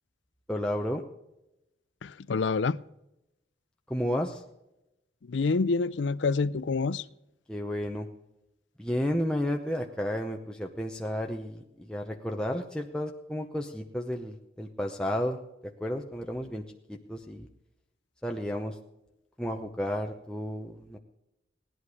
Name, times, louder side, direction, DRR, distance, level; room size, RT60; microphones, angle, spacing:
voice 1, 0.5-1.0 3.9-4.4 7.5-8.1 8.8-17.5 18.2-18.8 19.4-21.0, equal, 5° left, 0.8 m, -32 dB
voice 2, 2.0-2.8 5.3-7.0, left 4 dB, 70° left, 0.5 m, -27 dB
17.5 x 11.0 x 4.9 m
head